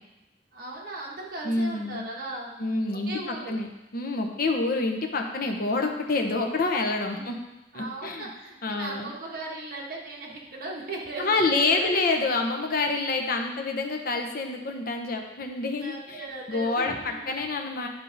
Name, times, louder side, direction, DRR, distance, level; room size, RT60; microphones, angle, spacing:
voice 1, 0.5-2.5 2.9-3.6 7.1-7.3 7.7-12.1 15.8-17.3, right 2 dB, 55° right, -2 dB, 1.4 m, -37 dB
voice 2, 1.4-2.0 2.6-3.7 3.9-7.4 7.7-8.3 8.6-9.1 11.2-17.9, left 3 dB, 55° left, 3 dB, 0.8 m, -27 dB
10.5 x 3.6 x 4.0 m, 0.96 s
head